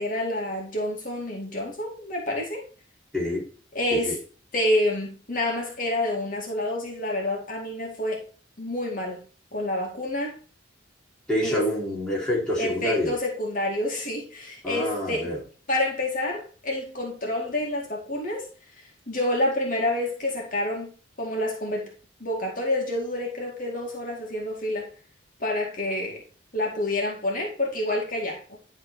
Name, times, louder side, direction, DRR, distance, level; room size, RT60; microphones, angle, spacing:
voice 1, 0.0-2.6 3.7-4.2 4.5-8.2 8.6-9.2 9.5-10.4 11.4-11.6 12.6-15.3 15.7-18.5 19.1-20.9 21.2-21.9 22.2-24.9 25.4-26.2 26.5-28.6, left 1 dB, 45° left, 2.2 m, -28 dB
voice 2, 3.1-3.4 3.9-4.2 11.3-13.2 14.6-15.4, left 1 dB, 5° left, 2.8 m, -27 dB
11.0 x 3.9 x 4.2 m
head